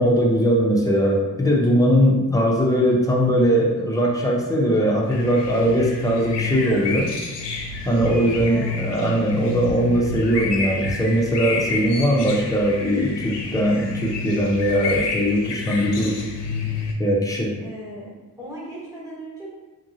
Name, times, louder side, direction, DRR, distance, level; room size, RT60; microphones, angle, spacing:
voice 1, 0.0-7.1 7.9-16.2 17.0-17.5, equal, 10° left, -2 dB, 0.6 m, -20 dB
sound 1, 5.1-16.9, left 3 dB, 75° left, 0.6 m, -30 dB
voice 2, 8.1-8.9 17.6-18.1 18.4-19.5, right 1 dB, 10° right, -7 dB, 1.2 m, -37 dB
2.9 x 2.5 x 2.7 m, 1.1 s
cardioid pair, 75°, 42 cm